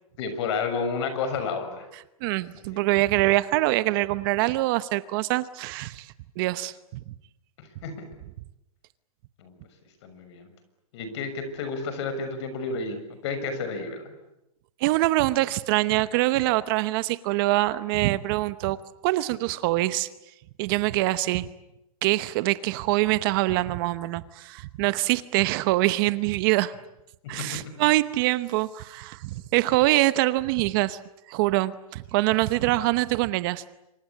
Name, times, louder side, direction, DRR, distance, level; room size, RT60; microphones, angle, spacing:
voice 1, 0.2-1.9 2.7-2.9 7.6-8.1 9.4-9.5 10.0-10.5 10.9-14.1 27.2-27.7, left 4 dB, 50° left, 9 dB, 6.5 m, -31 dB
voice 2, 2.2-6.1 6.4-6.7 14.8-18.8 19.0-20.1 20.6-21.5 22.0-26.7 27.3-31.0 31.3-33.7, right 18 dB, 40° right, 15 dB, 0.9 m, -24 dB
26.5 x 25.0 x 8.6 m, 0.89 s
hypercardioid pair, 145°, 18 cm